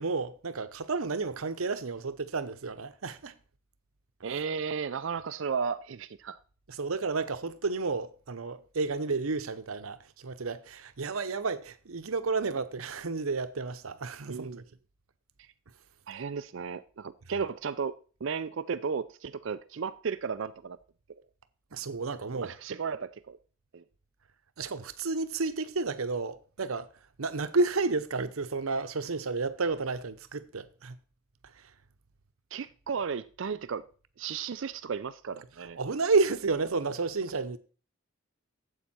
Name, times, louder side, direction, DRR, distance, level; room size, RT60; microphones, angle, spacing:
voice 1, 0.0-3.4 6.7-14.6 21.7-22.5 24.6-26.9 27.2-31.0 31.4-31.7 35.8-37.6, right 3 dB, 85° right, 0.8 m, -31 dB
voice 2, 4.2-6.4 14.3-14.6 16.1-20.8 22.3-23.4 23.7-23.8 32.5-33.9 34.2-35.8, right 6 dB, 60° right, 0.4 m, -34 dB
12.0 x 8.1 x 4.3 m
head